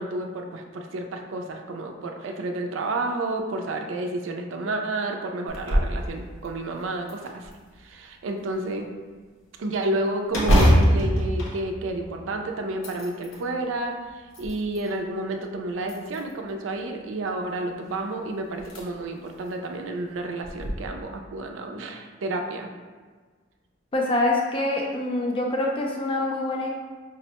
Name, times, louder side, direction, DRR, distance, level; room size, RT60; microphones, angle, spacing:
voice 1, 0.0-7.5 7.8-8.9 9.6-22.7, right 2 dB, 70° right, 4 dB, 0.4 m, -30 dB
sound 1, 5.5-6.0 6.4-6.5 7.1-7.9 10.3-12.3 12.7-13.4 14.1-14.9 15.8-16.5 18.0-18.1 18.6-18.8 19.3-19.4 20.4-20.7, equal, 75° left, 0.7 m, -23 dB
voice 2, 23.9-26.7, left 2 dB, 25° left, -1 dB, 0.4 m, -25 dB
5.1 x 2.1 x 2.8 m, 1.4 s
head